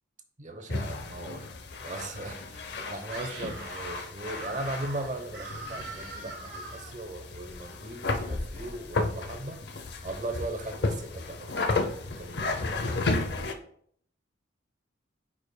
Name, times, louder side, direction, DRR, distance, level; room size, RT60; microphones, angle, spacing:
voice 1, 0.4-1.5 1.8-9.6 10.0-12.6, right 2 dB, 40° right, 6 dB, 0.8 m, -38 dB
sound 1, 0.7-13.5, left 3 dB, 55° left, 0.6 m, -33 dB
Screaming, 3.0-7.0, right 3 dB, 55° right, 1.3 m, -42 dB
9.3 x 5.0 x 2.2 m, 0.63 s
head